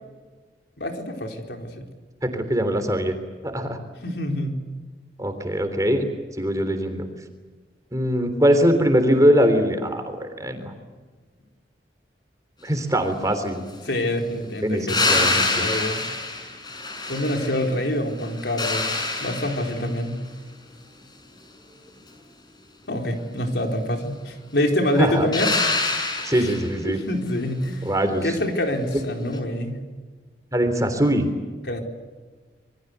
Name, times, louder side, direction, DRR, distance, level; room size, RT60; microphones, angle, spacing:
voice 1, 0.8-1.9 4.0-4.6 13.8-15.3 15.6-16.0 17.1-18.9 19.2-20.2 22.9-25.5 26.4-26.5 26.8-27.8 28.2-29.8 31.7-31.8, left 1 dB, 70° left, 3 dB, 4.4 m, -26 dB
voice 2, 2.2-3.1 3.4-3.8 5.2-6.1 6.4-7.1 7.9-10.7 12.6-13.6 14.6-15.7 25.0-25.3 26.2-27.0 27.8-28.3 30.5-31.2, equal, 20° right, 7 dB, 3.5 m, -22 dB
sound 1, 14.9-17.8 18.2-19.9 25.3-26.8 29.3-29.4, left 3 dB, 25° left, 6.0 m, -25 dB
27.5 x 23.0 x 8.3 m, 1.4 s
head